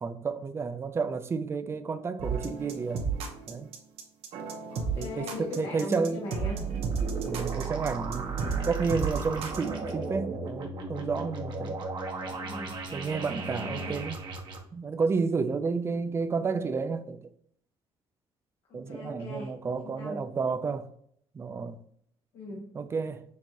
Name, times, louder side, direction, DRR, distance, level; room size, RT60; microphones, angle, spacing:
voice 1, 0.0-3.1 3.5-3.7 5.0-6.3 7.2-11.8 12.9-14.2 14.7-17.2 18.7-20.9 21.3-21.8 22.7-23.2, right 5 dB, 25° right, 0.4 m, -31 dB
sound 1, 2.2-9.7, right 5 dB, 80° right, 1.0 m, -33 dB
voice 2, 4.7-6.6 12.3-12.7 13.6-14.0 18.7-19.5 19.8-20.2 22.3-22.7, left 2 dB, 85° left, 1.4 m, -39 dB
sound 2, 6.5-14.6, right 4 dB, 50° right, 1.0 m, -35 dB
6.5 x 2.9 x 2.6 m
cardioid pair, 140°, 10 cm